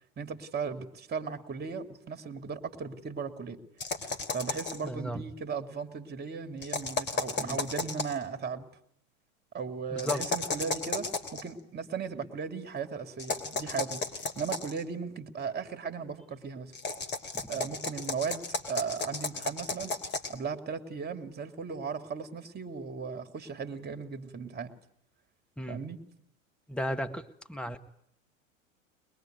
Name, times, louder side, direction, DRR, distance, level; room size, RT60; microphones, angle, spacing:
voice 1, 0.2-3.6 4.3-8.7 9.5-16.7 17.5-20.0 20.3-24.7 25.7-26.0, right 5 dB, 25° right, 9 dB, 2.8 m, -37 dB
sound 1, 3.8-4.9 6.6-8.2 10.0-11.4 13.2-14.8 16.7-20.4, left 3 dB, 25° left, 3.4 m, -34 dB
voice 2, 4.8-5.2 7.4-7.6 9.9-10.2 17.3-17.5 25.6-25.8 26.7-27.8, equal, ahead, 7 dB, 1.8 m, -35 dB
22.5 x 21.5 x 9.3 m, 0.68 s
hypercardioid pair, 100°, 41 cm